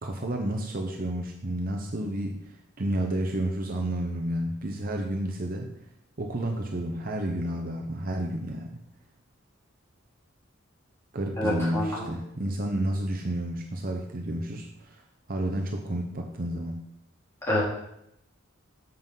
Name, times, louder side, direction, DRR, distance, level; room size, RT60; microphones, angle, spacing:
voice 1, 0.0-5.7 6.2-8.7 11.1-15.0 15.3-16.8, right 1 dB, 45° right, 2 dB, 0.8 m, -31 dB
voice 2, 11.4-12.1 17.5-17.6, left 1 dB, 15° left, -8 dB, 3.6 m, -27 dB
7.7 x 5.5 x 5.7 m, 0.80 s
head